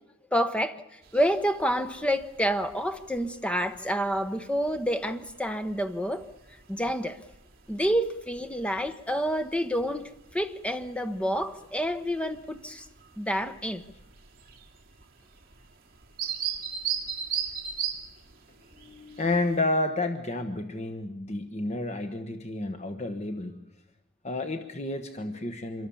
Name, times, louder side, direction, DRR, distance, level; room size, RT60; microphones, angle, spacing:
voice 1, 0.3-0.8 1.1-6.3 6.7-7.2 7.7-12.9 13.2-13.8, equal, 5° left, 1.1 m, -28 dB
sound 1, 1.0-19.6, right 8 dB, 45° right, 3.3 m, -40 dB
voice 2, 18.8-23.6 24.2-25.9, left 2 dB, 30° left, 1.2 m, -30 dB
26.5 x 23.0 x 7.2 m
head